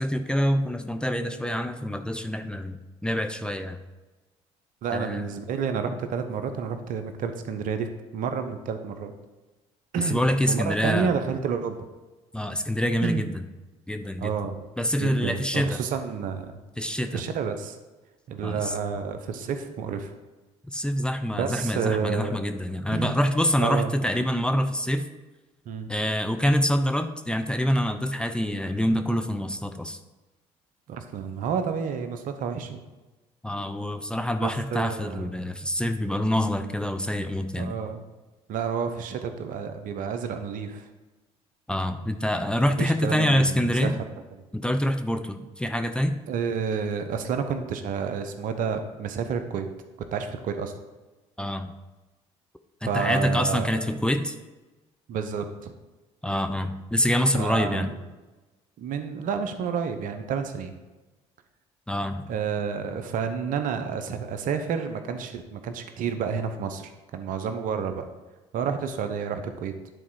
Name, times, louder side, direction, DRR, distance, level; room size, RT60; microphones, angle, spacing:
voice 1, 0.0-3.8 4.9-5.2 10.0-11.1 12.3-13.3 13.9-14.3 14.8-15.8 16.8-17.2 18.4-18.7 20.7-25.0 25.9-30.0 33.4-37.8 41.7-44.0 44.5-46.2 51.4-51.7 52.8-54.4 56.2-57.9 61.9-62.3, equal, 5° left, 7 dB, 0.6 m, -26 dB
voice 2, 4.8-7.9 8.1-9.1 9.9-10.2 10.5-11.8 13.0-13.2 14.2-14.6 15.0-16.5 17.1-17.8 18.3-20.1 21.3-22.4 22.9-23.1 23.6-23.9 25.7-25.9 30.9-32.8 34.4-35.3 37.6-38.0 38.5-40.9 42.8-44.0 46.3-49.7 50.1-50.7 52.9-53.7 55.1-55.7 57.3-57.9 58.8-60.7 62.3-68.1 68.5-69.7, right 6 dB, 65° right, 8 dB, 0.8 m, -30 dB
9.9 x 4.1 x 4.7 m, 1.2 s
hypercardioid pair, 60°, 15 cm